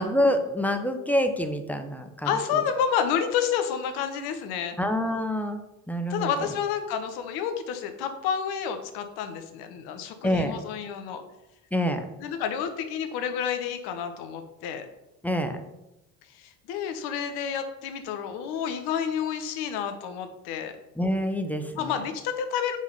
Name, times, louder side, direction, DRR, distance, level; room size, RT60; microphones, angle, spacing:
voice 1, 0.0-2.3 4.8-5.6 5.9-6.3 10.2-10.6 11.7-12.0 15.2-15.6 21.0-21.9, equal, 5° left, 6 dB, 0.7 m, -26 dB
voice 2, 2.2-4.8 6.1-11.2 12.2-14.9 16.3-20.7 21.8-22.8, left 8 dB, 65° left, 7 dB, 0.9 m, -29 dB
4.8 x 3.8 x 5.4 m, 0.93 s
hypercardioid pair, 60°, 42 cm